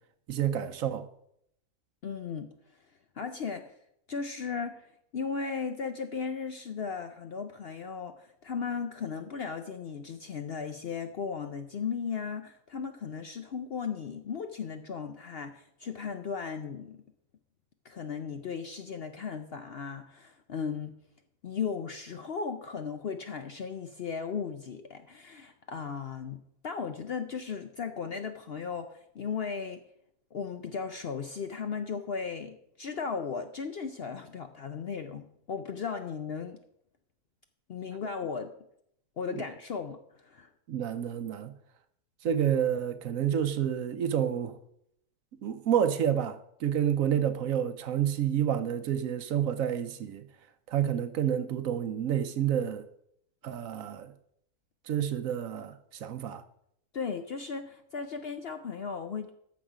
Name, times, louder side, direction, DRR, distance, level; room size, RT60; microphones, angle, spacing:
voice 1, 0.3-1.1 39.3-39.4 40.7-41.5 42.2-44.6 45.4-50.3 50.7-52.8 53.4-54.1 54.9-56.4, right 9 dB, 65° right, 1.1 m, -29 dB
voice 2, 2.0-2.5 3.1-3.7 4.1-17.0 17.8-21.0 21.4-29.8 30.3-36.6 37.7-38.5 39.2-40.5 56.9-59.3, left 6 dB, 60° left, 0.7 m, -36 dB
13.5 x 6.0 x 4.9 m
omnidirectional pair, 1.6 m